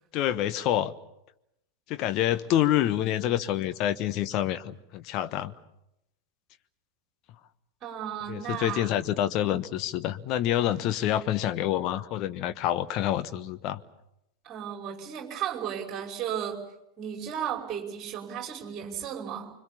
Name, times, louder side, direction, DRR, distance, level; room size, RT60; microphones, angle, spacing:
voice 1, 0.1-0.9 1.9-5.5 8.3-13.8, left 12 dB, 40° left, 10 dB, 1.2 m, -27 dB
voice 2, 7.8-8.9 14.4-16.6 17.0-19.5, right 9 dB, 30° right, 2 dB, 5.6 m, -34 dB
25.5 x 23.5 x 7.2 m, 0.85 s
figure-of-eight pair, 90°, 0 cm